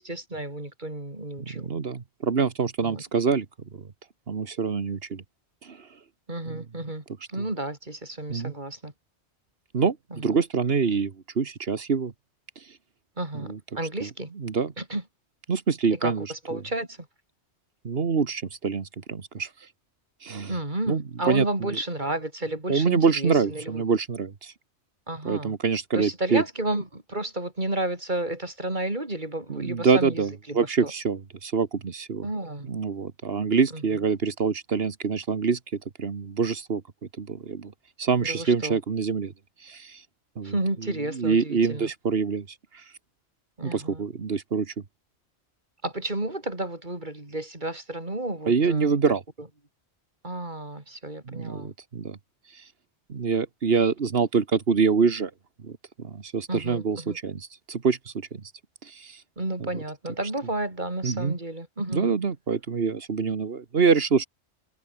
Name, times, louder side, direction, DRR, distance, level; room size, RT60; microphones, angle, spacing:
voice 1, 0.0-1.7 2.8-3.0 6.3-8.9 10.1-10.4 13.2-14.3 14.8-15.0 15.9-17.1 20.5-23.8 25.1-25.6 25.9-30.9 32.2-32.7 33.7-33.8 38.2-38.8 40.4-41.9 43.6-44.0 45.8-49.0 50.2-51.7 56.5-57.2 59.4-62.2, right 1 dB, 45° right, 4.3 m, -32 dB
voice 2, 1.4-3.5 3.7-3.9 4.3-5.2 5.6-5.8 6.5-6.6 8.3-8.5 9.7-12.1 13.3-13.6 14.0-14.1 14.4-14.7 15.5-16.3 17.8-19.5 20.2-20.5 20.9-21.5 22.7-24.5 25.3-26.4 29.5-32.3 32.6-35.6 36.0-36.8 37.2-37.7 38.0-39.3 39.6-40.0 40.4-40.5 40.8-42.5 43.6-44.7 48.5-49.2 51.3-52.2 53.1-55.3 55.6-58.0 58.3-58.4 58.8-59.2 61.0-61.4 61.9-64.3, right 5 dB, 60° right, 1.7 m, -25 dB
omnidirectional pair, 1.1 m